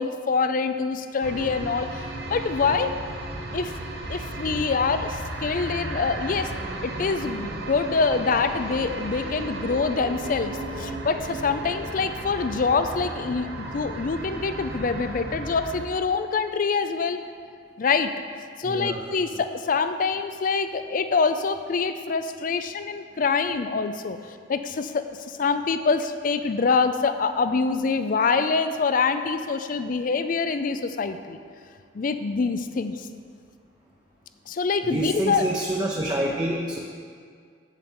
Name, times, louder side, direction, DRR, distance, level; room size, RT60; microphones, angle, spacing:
voice 1, 0.0-2.9 3.5-3.7 4.1-6.5 6.8-17.2 17.8-18.1 18.6-31.4 31.9-33.1 34.5-35.5, left 4 dB, 50° left, 10 dB, 0.4 m, -25 dB
sound 1, 1.2-15.8, right 2 dB, 65° right, 0.8 m, -34 dB
voice 2, 18.6-19.0 34.8-36.8, right 1 dB, 25° right, -2 dB, 0.7 m, -27 dB
8.0 x 7.0 x 4.3 m, 2.1 s
head